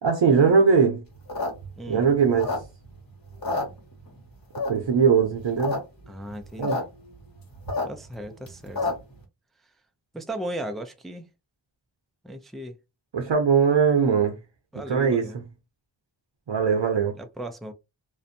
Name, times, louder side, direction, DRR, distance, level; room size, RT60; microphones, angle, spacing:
voice 1, 0.0-1.0 1.9-2.5 4.7-5.8 6.6-6.8 13.1-14.4 14.9-15.4 16.5-17.2, right 6 dB, 70° right, 0.7 m, -20 dB
sound 1, 1.1-3.0 3.3-4.2 4.5-5.0 5.4-5.8 6.0-6.1 6.3-6.8 7.2-9.2, left 3 dB, 45° left, 1.2 m, -29 dB
voice 2, 6.1-6.8 7.9-8.8 10.1-11.3 12.2-12.7 14.7-15.4 17.2-17.7, right 1 dB, ahead, 0.3 m, -36 dB
2.5 x 2.2 x 2.6 m
wide cardioid pair, 55°, 46 cm